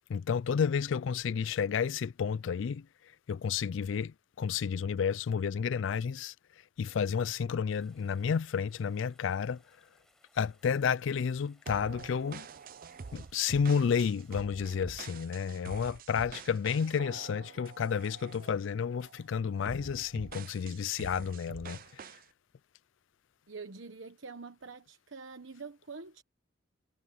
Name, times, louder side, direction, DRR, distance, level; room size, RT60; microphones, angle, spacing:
voice 1, 0.1-2.9 3.3-6.3 6.8-9.6 10.4-12.5 13.1-22.0, left 6 dB, 70° left, 0.4 m, -31 dB
sound 1, 7.7-14.4, left 1 dB, 5° left, 7.4 m, -69 dB
sound 2, 11.7-18.6 19.0-19.3 19.7-22.2, right 5 dB, 45° right, 0.5 m, -46 dB
voice 2, 23.5-26.2, right 4 dB, 70° right, 1.2 m, -45 dB
head